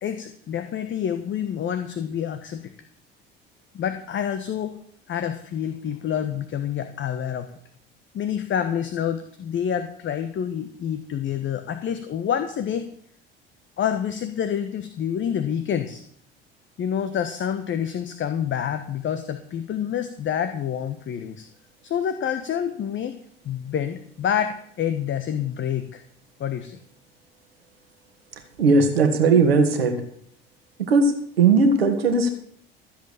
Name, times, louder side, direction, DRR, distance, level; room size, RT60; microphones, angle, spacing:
voice 1, 0.0-2.7 3.7-4.7 5.1-7.5 8.1-12.9 13.8-16.0 16.8-21.5 21.8-23.2 23.4-26.0 26.4-26.8, left 9 dB, 40° left, 9 dB, 1.3 m, -27 dB
voice 2, 28.6-30.0 30.8-32.3, right 4 dB, 85° right, 6 dB, 2.0 m, -18 dB
14.5 x 7.8 x 7.2 m, 0.63 s
figure-of-eight pair, 60°, 29 cm